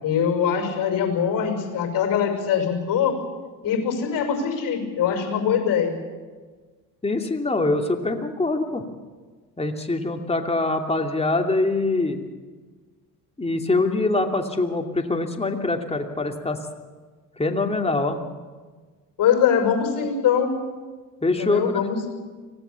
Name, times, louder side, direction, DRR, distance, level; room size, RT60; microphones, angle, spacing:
voice 1, 0.0-3.1 3.6-5.9 19.2-20.5 21.4-22.1, left 8 dB, 45° left, 3 dB, 6.3 m, -22 dB
voice 2, 7.0-8.8 9.6-12.2 13.4-16.6 17.4-18.2 21.2-21.6, left 2 dB, 15° left, 3 dB, 2.8 m, -24 dB
25.0 x 17.5 x 7.1 m, 1.4 s
hypercardioid pair, 70°, 46 cm